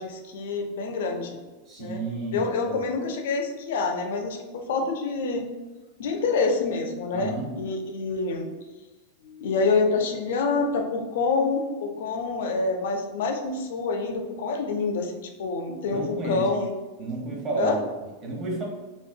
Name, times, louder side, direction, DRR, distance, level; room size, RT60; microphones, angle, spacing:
voice 1, 0.0-1.4 1.8-2.0 2.3-5.5 6.0-8.5 9.2-16.7 17.6-17.8, left 4 dB, 70° left, 4 dB, 0.4 m, -27 dB
voice 2, 1.7-2.8 7.1-7.5 15.9-16.5 17.0-17.8 18.2-18.6, right 2 dB, 35° right, -1 dB, 0.8 m, -31 dB
2.6 x 2.4 x 2.2 m, 1.2 s
hypercardioid pair, 100°, 0 cm